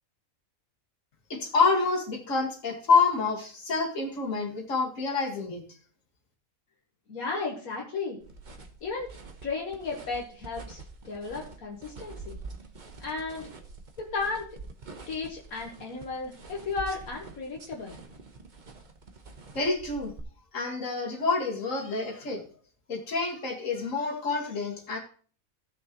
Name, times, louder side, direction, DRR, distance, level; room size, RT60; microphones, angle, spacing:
voice 1, 1.3-5.6 19.5-20.1 20.5-22.4 22.9-25.0, left 4 dB, 65° left, 0 dB, 2.3 m, -27 dB
voice 2, 7.1-8.2 8.8-9.1 9.4-12.4 13.0-13.5 14.0-14.5 15.1-18.0, left 4 dB, 80° left, -1 dB, 1.9 m, -34 dB
sound 1, 8.2-20.2, right 3 dB, 35° right, 1.1 m, -46 dB
16.5 x 6.4 x 3.0 m, 0.42 s
omnidirectional pair, 1.5 m